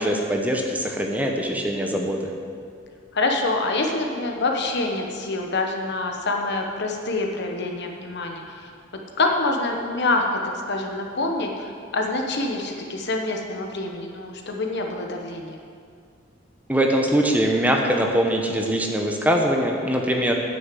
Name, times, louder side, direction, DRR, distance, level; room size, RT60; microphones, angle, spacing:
voice 1, 0.0-2.3 16.7-20.3, equal, 10° right, 1 dB, 0.8 m, -22 dB
voice 2, 3.1-8.6 9.2-10.4 10.7-15.6, left 2 dB, 60° left, 2 dB, 1.1 m, -26 dB
9.4 x 6.5 x 7.6 m, 2.2 s
head